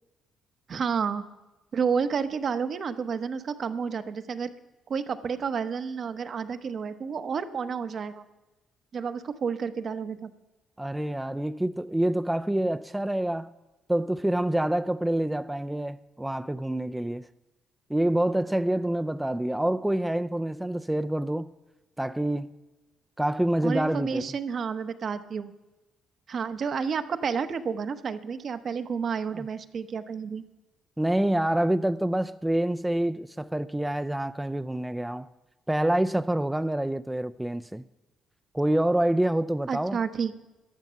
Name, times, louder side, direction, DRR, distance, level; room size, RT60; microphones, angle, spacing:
voice 1, 0.7-1.2 1.7-4.5 4.9-8.2 8.9-10.3 23.6-25.5 26.3-30.4 39.7-40.3, right 6 dB, 55° right, 1.0 m, -30 dB
voice 2, 10.8-13.5 13.9-17.3 17.9-21.5 22.0-22.5 23.2-24.2 29.3-29.5 31.0-35.3 35.7-37.8 38.5-40.0, right 1 dB, 10° right, 0.5 m, -27 dB
15.0 x 10.5 x 5.7 m
supercardioid pair, 60°, 0 cm